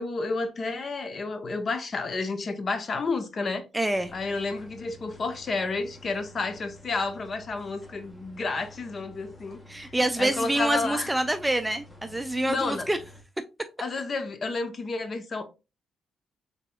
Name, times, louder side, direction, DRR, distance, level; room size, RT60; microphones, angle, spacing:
voice 1, 0.0-3.7 4.1-9.6 10.2-11.1 12.4-12.9 13.8-15.5, left 3 dB, 45° left, 0.7 m, -30 dB
voice 2, 3.7-4.1 9.7-13.0, right 1 dB, 10° right, 0.4 m, -26 dB
sound 1, 3.9-13.2, left 1 dB, 25° left, 1.2 m, -50 dB
4.0 x 3.5 x 2.2 m
supercardioid pair, 65°, 0 cm